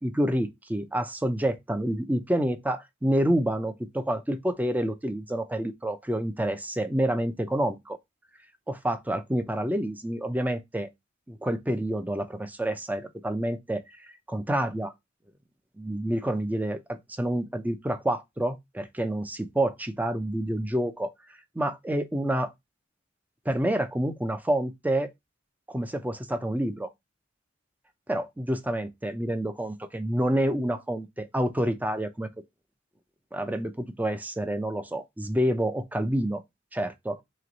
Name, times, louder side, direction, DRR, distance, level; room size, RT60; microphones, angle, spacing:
voice 1, 0.0-8.0 8.7-10.9 11.3-13.8 14.3-14.9 15.8-21.1 21.6-22.5 23.5-25.1 25.7-26.9 28.1-32.3 33.3-36.4 36.7-37.2, right 1 dB, 10° right, 0.5 m, -28 dB
3.3 x 3.2 x 3.9 m
head